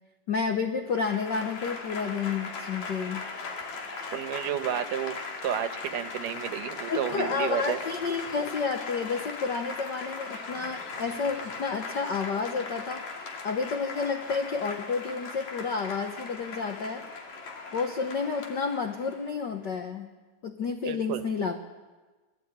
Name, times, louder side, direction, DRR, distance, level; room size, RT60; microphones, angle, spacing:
voice 1, 0.3-3.3 6.9-13.0 13.4-17.1 17.7-20.1 20.4-21.6, left 5 dB, 80° left, 5 dB, 0.9 m, -30 dB
Applause / Crowd, 0.9-19.4, left 4 dB, 60° left, 3.6 m, -39 dB
voice 2, 4.1-7.8 20.9-21.2, right 10 dB, 85° right, 9 dB, 2.6 m, -31 dB
20.0 x 17.0 x 8.9 m, 1.3 s
omnidirectional pair, 3.7 m